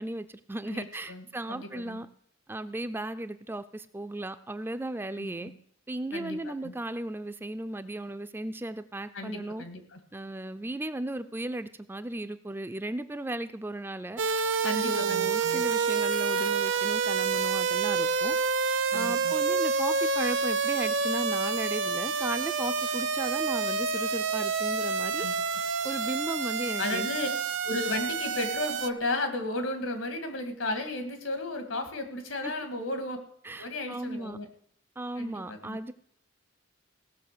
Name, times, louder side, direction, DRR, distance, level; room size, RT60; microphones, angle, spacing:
voice 1, 0.0-2.1 2.5-5.5 5.9-9.6 10.1-14.2 14.6-18.4 18.9-25.3 25.8-27.1 32.4-32.5 33.4-34.4 35.0-35.9, right 1 dB, 10° right, 11 dB, 0.4 m, -36 dB
voice 2, 0.7-2.0 5.2-5.5 6.1-6.7 9.1-10.0 14.6-15.6 18.9-19.3 25.2-25.3 26.8-27.3 27.6-33.2 33.6-34.5 35.2-35.8, left 2 dB, 80° left, 7 dB, 2.1 m, -34 dB
sound 1, 14.2-28.9, right 5 dB, 65° right, 0.8 m, -28 dB
16.5 x 6.5 x 6.7 m, 0.67 s
head